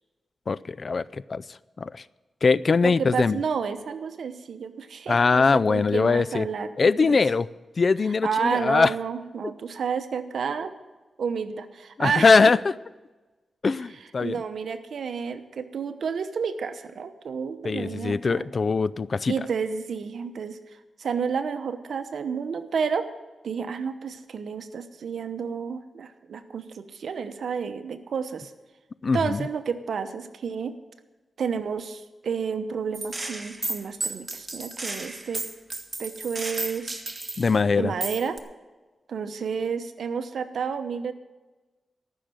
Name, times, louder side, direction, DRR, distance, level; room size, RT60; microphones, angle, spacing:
voice 1, 0.5-2.0 2.4-3.4 5.1-6.5 6.8-7.5 7.8-8.9 12.0-12.8 13.6-14.4 17.6-19.3 29.0-29.5 37.4-37.9, left 4 dB, 50° left, 0.4 m, -22 dB
voice 2, 2.8-6.7 7.0-7.2 8.2-10.7 11.2-12.5 14.2-18.5 19.3-20.6 21.0-23.1 23.4-28.5 29.1-30.7 31.4-35.4 36.0-37.0 37.8-38.4 39.1-41.1, right 6 dB, 75° right, 0.9 m, -30 dB
Gunshot gunfire, 32.9-37.6 38.0-38.4, right 2 dB, 30° right, 1.5 m, -33 dB
14.0 x 6.6 x 9.1 m
cardioid pair, 60°, 0 cm